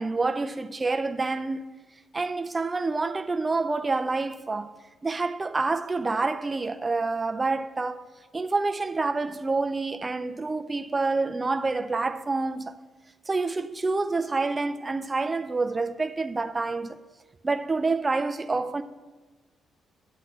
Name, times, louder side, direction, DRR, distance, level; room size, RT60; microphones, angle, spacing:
voice 1, 0.0-1.7 2.1-4.7 5.0-8.0 8.3-12.8 13.3-17.0 17.4-18.8, right 3 dB, 25° right, 0.4 m, -27 dB
11.5 x 8.0 x 2.4 m
cardioid pair, 90°, 0 cm